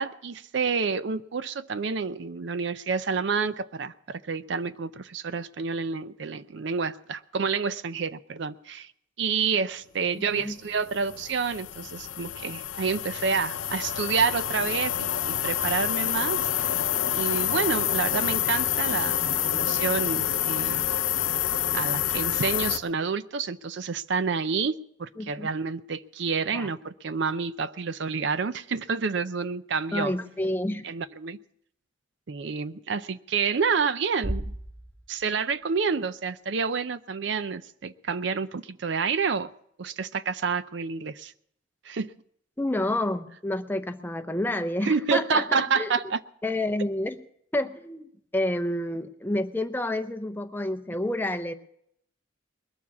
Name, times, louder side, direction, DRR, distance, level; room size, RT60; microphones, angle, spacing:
voice 1, 0.0-8.9 9.2-16.8 17.1-20.8 21.7-30.1 30.8-31.4 32.3-34.5 35.1-39.5 39.8-41.3 41.8-42.1 44.8-46.2, right 5 dB, 60° right, 0.5 m, -29 dB
voice 2, 10.2-10.6 25.2-25.5 26.5-26.7 29.9-30.8 42.6-45.9 46.4-47.2 47.5-51.5, left 1 dB, 10° left, 0.6 m, -29 dB
sound 1, 10.6-22.8, left 10 dB, 75° left, 0.7 m, -28 dB
Bass drum, 34.2-35.9, equal, 10° right, 4.6 m, -36 dB
21.0 x 7.2 x 7.1 m
head